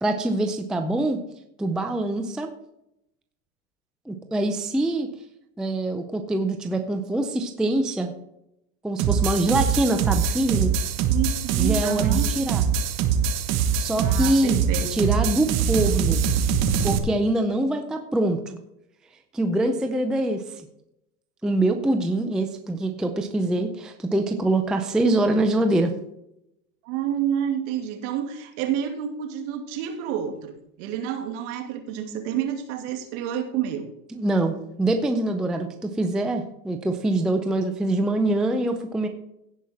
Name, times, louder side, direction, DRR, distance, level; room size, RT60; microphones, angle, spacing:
voice 1, 0.0-1.2 1.6-2.5 4.1-5.1 5.6-8.1 8.8-10.7 11.6-12.6 13.7-14.6 14.9-16.2 16.8-18.6 19.3-20.4 21.4-25.9 34.1-39.1, right 2 dB, ahead, 6 dB, 0.4 m, -24 dB
sound 1, 9.0-17.0, right 7 dB, 35° right, 1.2 m, -23 dB
voice 2, 11.1-12.3 14.0-15.1 26.8-33.9, right 9 dB, 55° right, 5 dB, 2.4 m, -29 dB
16.5 x 5.6 x 4.3 m, 0.81 s
supercardioid pair, 135°, 44 cm